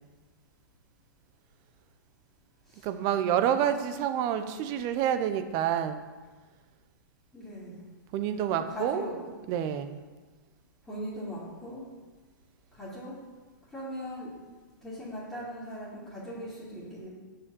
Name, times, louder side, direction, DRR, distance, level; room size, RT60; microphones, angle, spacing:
voice 1, 2.8-6.1 8.1-9.0 9.5-10.0, right 10 dB, 30° right, 10 dB, 0.6 m, -28 dB
voice 2, 3.6-4.5 7.3-7.8 8.5-9.2 10.8-11.9 12.7-13.2 13.7-14.4 14.8-17.1, equal, 5° left, -12 dB, 2.4 m, -40 dB
7.2 x 5.1 x 6.9 m, 1.3 s
hypercardioid pair, 145°, 11 cm